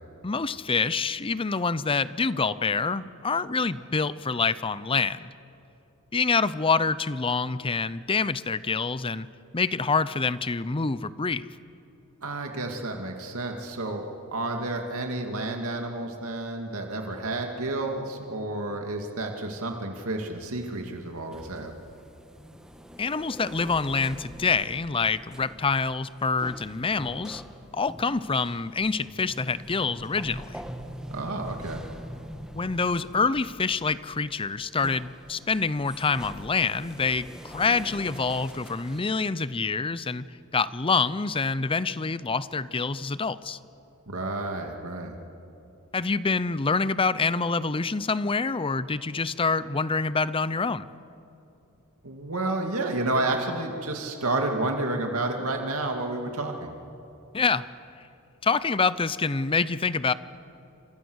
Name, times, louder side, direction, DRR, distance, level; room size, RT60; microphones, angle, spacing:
voice 1, 0.2-5.3 6.1-9.3 9.5-11.5 23.0-27.4 27.7-30.6 32.5-40.3 40.5-43.6 45.9-50.9 57.3-57.7 58.4-60.1, left 4 dB, 25° left, 16 dB, 0.6 m, -26 dB
voice 2, 12.2-14.0 14.3-21.7 31.1-31.8 44.1-45.1 52.0-56.7, right 2 dB, 80° right, 3 dB, 2.4 m, -30 dB
sound 1, 20.4-39.0, equal, 5° right, 1.4 m, -44 dB
28.5 x 27.0 x 6.4 m, 2.8 s
head